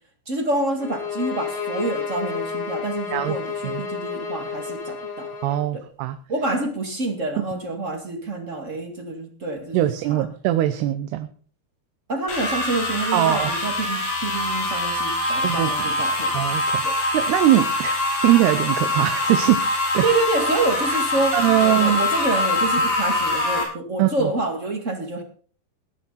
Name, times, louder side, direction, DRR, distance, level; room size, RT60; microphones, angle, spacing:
voice 1, 0.3-5.3 5.7-5.8 6.3-10.2 12.1-16.5 16.8-17.0 20.0-25.2, right 2 dB, 30° right, 5 dB, 1.4 m, -27 dB
sound 1, 0.8-5.7, left 5 dB, 45° left, 3.3 m, -31 dB
voice 2, 5.4-6.2 7.4-7.5 9.7-11.3 13.1-13.5 15.4-15.9 16.3-19.6 19.9-20.0 20.9-21.0 21.3-22.0 24.0-24.3, right 14 dB, 80° right, 10 dB, 2.8 m, -21 dB
sound 2, 12.3-23.6, left 2 dB, 85° left, 7.8 m, -24 dB
19.5 x 9.9 x 4.1 m, 0.42 s
omnidirectional pair, 4.8 m